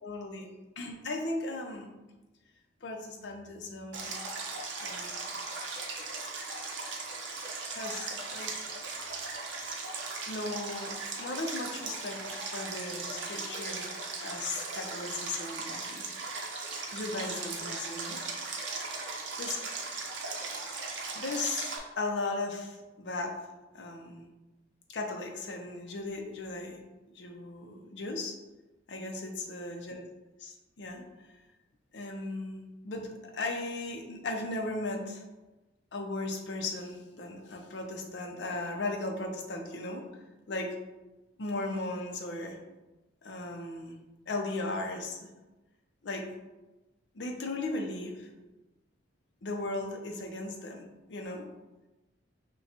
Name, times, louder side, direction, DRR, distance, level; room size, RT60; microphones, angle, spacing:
voice 1, 0.0-0.5 0.8-1.9 2.8-4.1 4.8-5.4 7.7-8.6 10.3-13.9 14.2-16.0 16.9-18.2 19.4-19.6 21.1-21.7 22.0-23.3 23.7-24.3 24.9-26.8 27.1-28.4 28.9-30.0 30.4-31.0 31.9-35.2 35.9-40.1 40.5-40.8 41.4-42.6 43.2-44.0 44.3-45.3 46.0-46.3 47.1-48.3 49.4-51.5, left 2 dB, 65° left, 3 dB, 0.6 m, -37 dB
Stream, 3.9-21.8, right 3 dB, 70° right, 0.7 m, -38 dB
5.8 x 2.3 x 2.8 m, 1.1 s
head